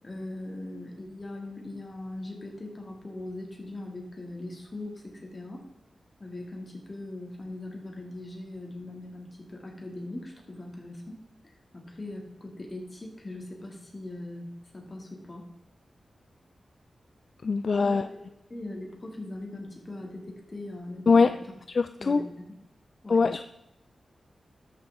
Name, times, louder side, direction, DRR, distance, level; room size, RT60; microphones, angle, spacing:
voice 1, 0.0-5.6 6.2-11.2 11.7-14.5 14.7-15.4 17.8-18.2 18.5-21.4 22.0-22.5 23.0-23.2, left 2 dB, 30° left, 0 dB, 2.2 m, -40 dB
voice 2, 17.4-18.1 21.1-21.3 21.7-22.2 23.1-23.4, left 4 dB, 55° left, 10 dB, 0.3 m, -22 dB
13.0 x 6.1 x 3.6 m, 0.86 s
wide cardioid pair, 85°, 0 cm